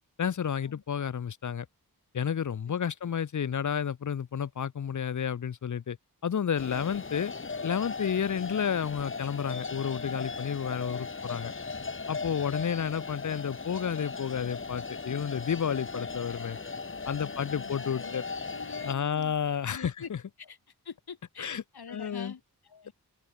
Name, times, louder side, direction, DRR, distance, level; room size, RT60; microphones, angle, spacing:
voice 1, 0.2-1.7 2.1-6.0 6.2-7.3 7.6-11.5 12.1-16.6 17.1-18.2 18.8-20.2 21.4-21.6 21.9-22.3, left 8 dB, 50° left, 0.8 m, -31 dB
sound 1, 6.6-18.9, left 4 dB, 35° left, 1.6 m, -38 dB
voice 2, 17.2-18.2 18.5-19.4 19.7-20.1 20.4-20.6 20.8-22.9, left 6 dB, 80° left, 7.8 m, -45 dB
open air
wide cardioid pair, 105°, 37 cm